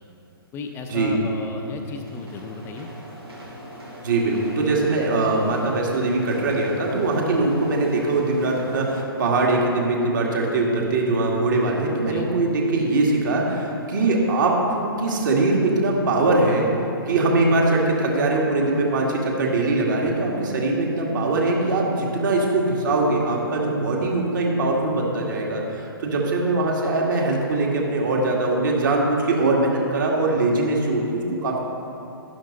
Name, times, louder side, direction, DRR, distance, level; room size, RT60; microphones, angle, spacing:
voice 1, 0.5-2.9 12.0-12.3, left 4 dB, 20° left, 3 dB, 0.7 m, -34 dB
sound 1, 1.8-9.0, left 1 dB, 90° right, 2.6 m, -41 dB
voice 2, 4.0-16.7 17.1-31.6, right 2 dB, 55° right, -1 dB, 2.1 m, -22 dB
12.0 x 10.5 x 4.0 m, 2.8 s
figure-of-eight pair, 125°, 13 cm